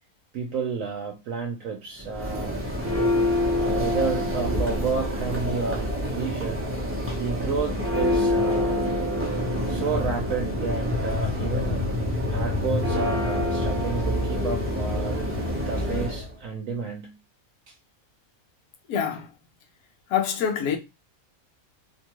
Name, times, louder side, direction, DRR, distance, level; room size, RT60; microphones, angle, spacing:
voice 1, 0.3-2.6 3.6-6.6 7.1-8.9 9.7-11.8 12.3-15.4 15.7-17.1 17.7-17.8, right 5 dB, 70° right, 0.9 m, -31 dB
Church bell, 2.0-16.3, left 1 dB, 20° right, 0.4 m, -26 dB
voice 2, 18.9-19.3 20.1-20.8, left 8 dB, 80° left, 1.0 m, -25 dB
2.8 x 2.3 x 2.9 m
omnidirectional pair, 1.5 m